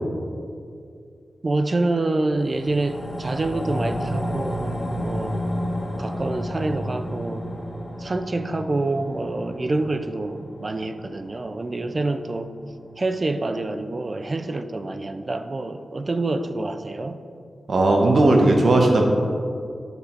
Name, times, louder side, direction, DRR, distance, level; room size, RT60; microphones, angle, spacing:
voice 1, 1.4-5.4 6.0-7.5 8.0-12.5 13.0-17.2, right 2 dB, 35° right, 9 dB, 0.3 m, -27 dB
sound 1, 2.3-12.9 13.3-13.4, equal, 20° left, 1.1 m, -31 dB
voice 2, 17.7-19.1, right 2 dB, 60° right, 2 dB, 0.8 m, -16 dB
8.0 x 3.3 x 4.2 m, 2.4 s
wide cardioid pair, 115°, 0 cm